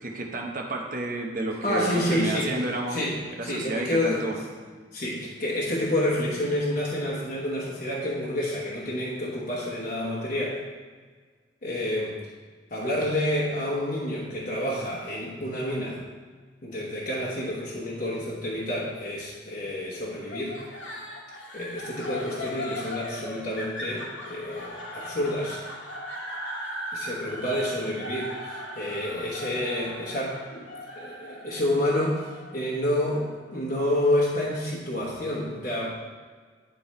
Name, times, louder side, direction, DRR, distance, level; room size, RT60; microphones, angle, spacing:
voice 1, 0.0-3.0 3.4-4.4, right 2 dB, 45° right, 1 dB, 0.9 m, -31 dB
voice 2, 1.6-2.6 2.9-4.3 4.9-10.6 11.6-12.2 12.7-16.0 16.6-20.6 21.5-25.6 26.9-30.7 31.0-35.9, left 1 dB, 45° left, -5 dB, 1.1 m, -29 dB
sound 1, 20.3-33.5, left 1 dB, 85° left, 1.3 m, -38 dB
9.7 x 3.8 x 4.3 m, 1.5 s
head